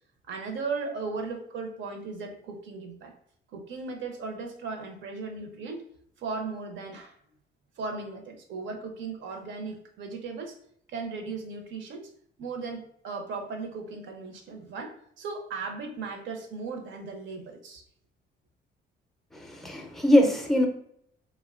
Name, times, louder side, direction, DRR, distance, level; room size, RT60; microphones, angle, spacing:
voice 1, 0.3-3.1 3.5-5.8 6.2-7.1 7.8-10.6 10.9-12.1 12.4-17.8, right 4 dB, 70° right, 4 dB, 0.6 m, -37 dB
voice 2, 19.3-20.7, left 1 dB, ahead, 3 dB, 0.4 m, -22 dB
3.0 x 2.1 x 2.3 m, 0.68 s
cardioid pair, 90°, 20 cm